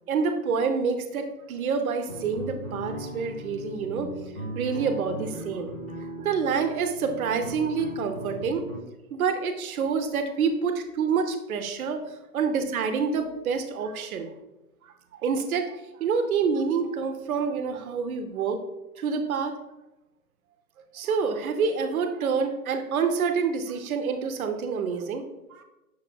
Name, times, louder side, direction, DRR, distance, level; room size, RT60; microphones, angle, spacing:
voice 1, 0.1-4.1 4.5-5.7 6.2-8.7 9.1-12.0 12.3-14.3 14.8-14.9 15.2-18.6 19.0-19.5 20.9-25.6, right 5 dB, 65° right, 7 dB, 0.7 m, -27 dB
sound 1, 2.1-8.8, right 1 dB, 25° left, 0.8 m, -38 dB
6.3 x 3.3 x 2.2 m, 0.98 s
hypercardioid pair, 145°, 46 cm